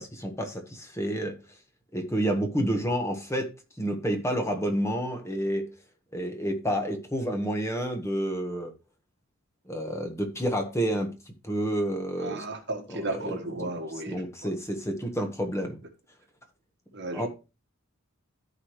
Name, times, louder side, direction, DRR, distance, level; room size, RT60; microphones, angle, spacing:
voice 1, 0.0-1.4 1.9-3.5 3.8-5.7 6.1-8.7 9.7-11.1 11.4-12.4 12.9-13.7 14.1-15.8 17.1-17.3, equal, 15° left, 1.4 m, -29 dB
voice 2, 12.2-14.5 16.9-17.3, right 2 dB, 50° right, 1.6 m, -35 dB
14.0 x 4.9 x 3.2 m
head